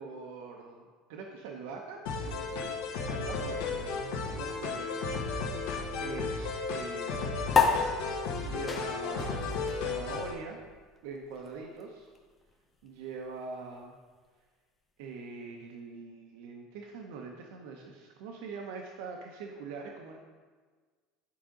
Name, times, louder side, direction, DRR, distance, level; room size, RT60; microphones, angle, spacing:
voice 1, 0.0-2.8 3.1-5.3 6.0-7.6 8.4-10.6 11.0-12.1 12.8-14.0 15.0-20.2, right 4 dB, 80° right, 1 dB, 0.8 m, -43 dB
sound 1, 2.1-10.3, left 4 dB, 90° left, 1.4 m, -34 dB
sound 2, 7.5-14.3, left 5 dB, 15° left, 0.7 m, -33 dB
9.9 x 5.0 x 3.8 m, 1.5 s
cardioid pair, 170°, 0 cm